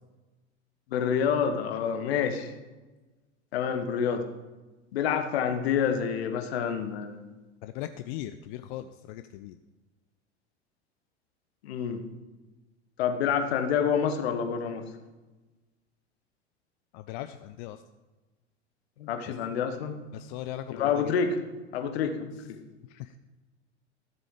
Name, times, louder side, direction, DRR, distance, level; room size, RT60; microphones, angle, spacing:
voice 1, 0.9-2.5 3.5-4.3 4.9-7.3 11.6-12.0 13.0-14.8 19.0-20.0 20.7-21.4 21.7-22.6, left 7 dB, 60° left, 7 dB, 1.3 m, -28 dB
voice 2, 7.6-9.6 16.9-17.8 19.3-19.4 20.1-21.0 22.9-23.2, left 13 dB, 45° left, 11 dB, 0.5 m, -39 dB
13.5 x 7.7 x 4.9 m, 1.2 s
figure-of-eight pair, 85°, 35 cm